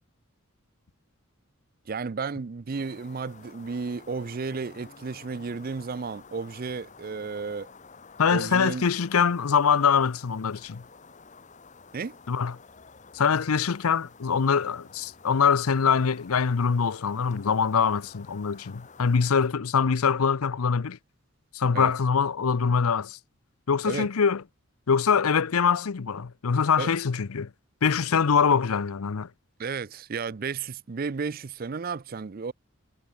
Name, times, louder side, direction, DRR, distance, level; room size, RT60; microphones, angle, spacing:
voice 1, 1.9-7.7 8.3-8.9 11.9-12.2 21.7-21.9 23.8-24.1 26.8-26.9 29.6-32.5, right 4 dB, 40° right, 0.4 m, -33 dB
sound 1, 2.7-19.5, left 4 dB, 35° left, 1.1 m, -51 dB
voice 2, 8.2-10.8 12.3-12.6 13.1-21.0 21.5-23.2 23.7-24.4 24.9-27.5 27.8-29.3, left 6 dB, 85° left, 0.6 m, -24 dB
head